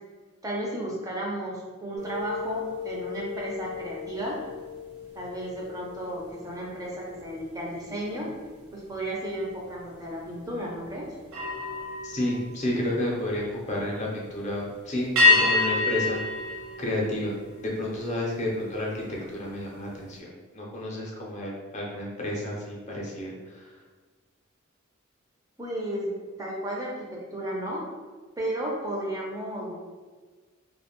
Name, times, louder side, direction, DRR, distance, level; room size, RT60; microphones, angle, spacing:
voice 1, 0.4-4.4 5.2-8.3 8.7-11.1 25.6-27.9 28.4-29.7, right 1 dB, 15° right, -3 dB, 0.4 m, -33 dB
sound 1, 2.0-7.5 8.0-8.3 11.3-13.4 15.2-17.7, left 3 dB, 70° right, 0.7 m, -29 dB
voice 2, 12.0-16.2 16.8-23.7, left 1 dB, 35° left, -3 dB, 0.5 m, -31 dB
2.5 x 2.1 x 2.9 m, 1.4 s
head